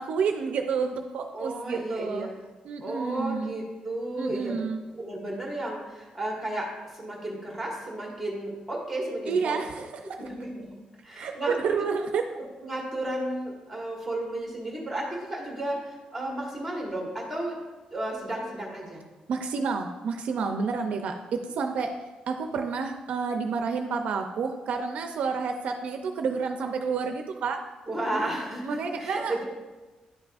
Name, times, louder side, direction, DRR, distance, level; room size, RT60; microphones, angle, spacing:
voice 1, 0.0-2.3 2.6-3.5 4.2-4.8 9.3-10.2 11.1-12.2 19.3-21.9 22.3-27.6 28.1-28.2 28.6-29.4, right 5 dB, 60° right, 5 dB, 0.5 m, -30 dB
voice 2, 1.3-2.4 2.8-4.6 4.9-9.6 10.2-10.7 11.0-11.7 12.6-17.6 17.9-19.0 27.9-29.4, right 1 dB, ahead, -2 dB, 1.7 m, -33 dB
10.0 x 5.9 x 2.4 m, 1.2 s
cardioid pair, 170°, 2 cm